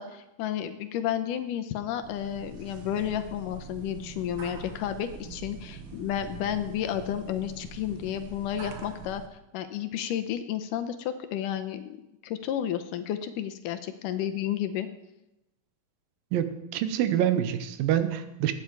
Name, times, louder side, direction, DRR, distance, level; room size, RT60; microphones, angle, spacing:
voice 1, 0.0-9.2 9.5-12.0 12.2-14.9, left 10 dB, 80° left, 9 dB, 2.2 m, -32 dB
sound 1, 2.0-9.3, right 5 dB, 65° right, 1.2 m, -44 dB
voice 2, 16.3-18.5, right 10 dB, 85° right, 10 dB, 2.6 m, -26 dB
16.0 x 9.6 x 4.7 m, 0.92 s
omnidirectional pair, 4.0 m